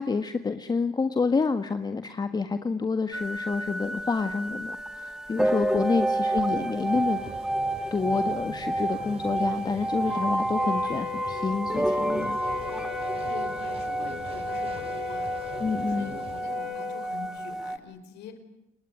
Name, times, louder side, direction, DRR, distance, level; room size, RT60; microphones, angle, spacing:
voice 1, 0.0-7.2 7.9-12.4 15.6-16.1, left 4 dB, 25° left, 9 dB, 1.6 m, -28 dB
sound 1, 3.1-17.8, right 1 dB, 5° right, 1.6 m, -30 dB
voice 2, 6.2-6.6 13.2-18.4, left 7 dB, 85° left, 9 dB, 5.1 m, -45 dB
sound 2, 6.8-16.4, right 4 dB, 35° right, 3.3 m, -44 dB
Wind instrument woodwind instrument, 10.5-17.1, left 16 dB, 60° left, 2.0 m, -39 dB
29.0 x 21.0 x 9.6 m, 0.83 s
cardioid pair, 110°, 17 cm